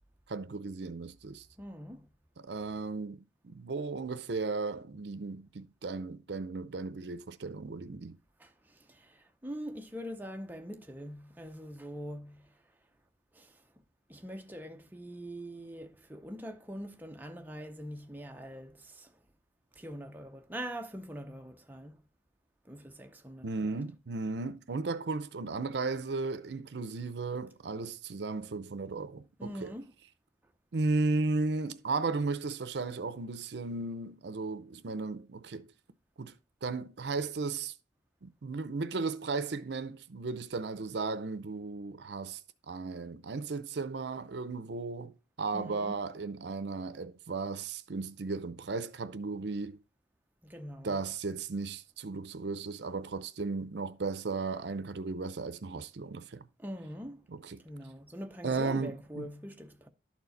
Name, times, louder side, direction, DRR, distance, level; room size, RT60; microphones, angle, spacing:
voice 1, 0.3-1.5 2.4-3.2 3.4-8.2 23.4-29.7 30.7-35.7 36.2-36.3 36.6-37.7 38.2-42.4 42.7-49.8 50.8-56.4 57.3-57.6 58.4-59.3, right 3 dB, 65° right, 0.6 m, -35 dB
voice 2, 1.6-2.1 8.4-12.6 13.3-13.7 14.1-19.2 19.7-22.0 22.6-23.8 29.4-29.9 45.5-46.0 50.4-51.0 56.6-57.3 57.6-59.9, equal, 10° right, 0.6 m, -43 dB
11.5 x 4.5 x 4.0 m
head